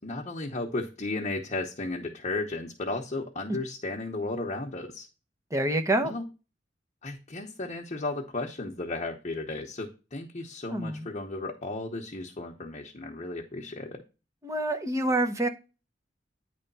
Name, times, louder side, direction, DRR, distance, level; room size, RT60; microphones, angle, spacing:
voice 1, 0.0-5.1 6.0-6.2 7.0-14.0, left 2 dB, 40° left, -1 dB, 0.9 m, -34 dB
voice 2, 5.5-6.1 10.7-11.1 14.4-15.5, right 1 dB, 15° right, 5 dB, 0.9 m, -27 dB
9.9 x 3.4 x 5.4 m, 0.30 s
head